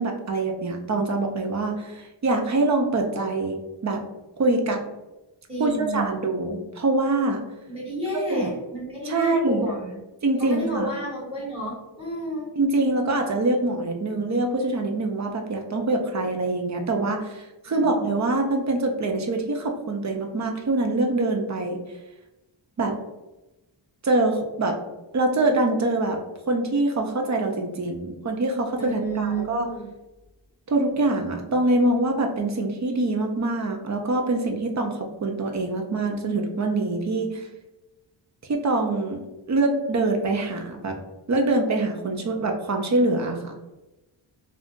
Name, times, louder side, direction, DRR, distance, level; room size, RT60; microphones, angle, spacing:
voice 1, 0.0-3.6 3.8-4.0 4.4-4.8 5.6-7.4 8.1-8.4 9.0-9.7 10.2-10.9 12.6-21.8 22.8-22.9 24.0-24.8 25.1-26.2 26.5-29.7 30.7-37.5 38.5-39.2 39.5-41.0 41.3-43.5, right 2 dB, 40° right, 3 dB, 0.4 m, -24 dB
voice 2, 5.5-6.1 7.7-10.0 10.4-12.4 17.6-17.9 28.8-29.9, right 1 dB, 10° right, -7 dB, 1.5 m, -31 dB
2.6 x 2.4 x 3.6 m, 1.0 s
wide cardioid pair, 165°, 46 cm